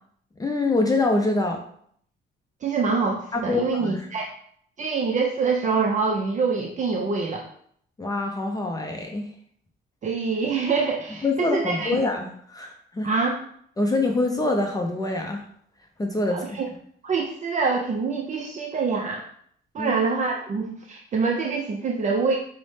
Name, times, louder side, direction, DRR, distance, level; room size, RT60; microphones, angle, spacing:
voice 1, 0.4-1.6 3.3-4.1 8.0-9.3 11.2-13.1 13.8-15.4 16.0-16.6 19.8-19.9, left 2 dB, 20° left, 2 dB, 0.5 m, -25 dB
voice 2, 2.6-4.3 4.8-7.4 10.0-12.0 13.0-13.4 16.3-16.7 17.0-19.2 19.7-22.4, right 4 dB, 40° right, 1 dB, 0.4 m, -25 dB
5.2 x 2.1 x 3.2 m, 0.64 s
cardioid pair, 90°, 20 cm